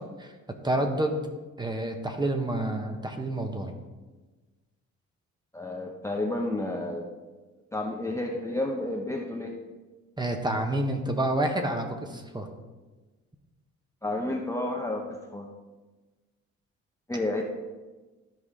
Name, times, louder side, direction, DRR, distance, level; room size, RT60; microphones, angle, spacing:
voice 1, 0.6-1.2 1.6-3.7 10.2-12.5, right 1 dB, 15° right, 4 dB, 1.1 m, -28 dB
voice 2, 5.5-7.1 7.7-9.6 14.0-15.5 17.1-17.4, left 2 dB, 10° left, -1 dB, 0.8 m, -31 dB
13.5 x 4.9 x 3.7 m, 1.2 s
cardioid pair, 90°, 30 cm